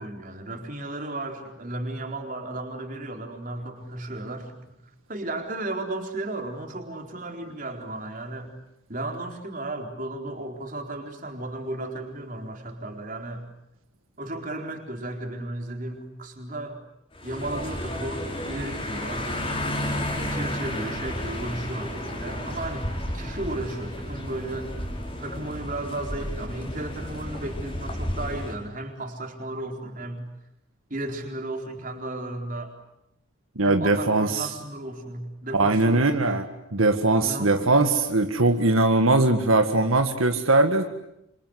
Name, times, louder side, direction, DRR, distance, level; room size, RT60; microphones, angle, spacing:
voice 1, 0.0-4.8 5.1-8.6 8.9-13.4 14.2-16.8 17.2-19.3 20.2-24.7 25.2-30.3 30.9-32.7 33.6-36.3 37.2-37.7, right 2 dB, 40° right, 3 dB, 4.3 m, -34 dB
sound 1, 17.1-28.5, left 1 dB, 25° left, 5.3 m, -32 dB
voice 2, 33.6-34.5 35.5-36.5 36.7-40.9, right 2 dB, 85° right, 5 dB, 1.9 m, -21 dB
27.5 x 26.5 x 8.1 m, 0.81 s
head